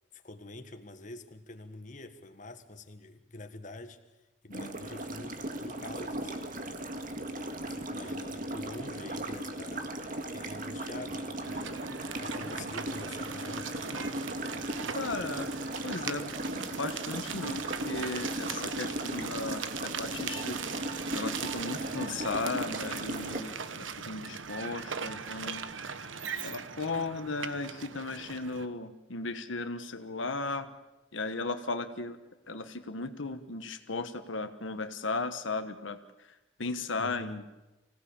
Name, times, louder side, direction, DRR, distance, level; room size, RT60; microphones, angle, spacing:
voice 1, 0.1-4.0 4.4-7.0 7.6-9.9 10.3-11.8 12.2-14.2 14.6-15.1 37.0-37.4, left 2 dB, 40° left, 7 dB, 1.5 m, -46 dB
sound 1, 4.5-23.4, right 1 dB, 45° right, 1.9 m, -37 dB
sound 2, 11.4-28.7, right 6 dB, 85° right, 1.2 m, -40 dB
voice 2, 14.9-15.5 15.8-20.6 21.1-25.6 25.9-26.0 26.4-30.7 31.1-32.2 32.5-37.4, left 3 dB, 80° left, 9 dB, 1.3 m, -36 dB
25.0 x 16.5 x 8.6 m, 1.1 s
head